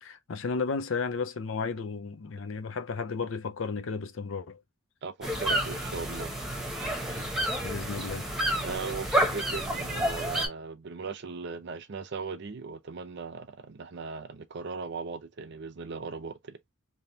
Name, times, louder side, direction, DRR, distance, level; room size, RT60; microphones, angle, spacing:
voice 1, 0.0-4.6 7.6-8.3, left 4 dB, 70° left, 0.5 m, -33 dB
voice 2, 5.0-6.3 8.6-16.6, right 4 dB, 55° right, 0.6 m, -38 dB
sound 1, 5.2-10.5, right 1 dB, ahead, 1.0 m, -30 dB
3.5 x 2.8 x 2.7 m
head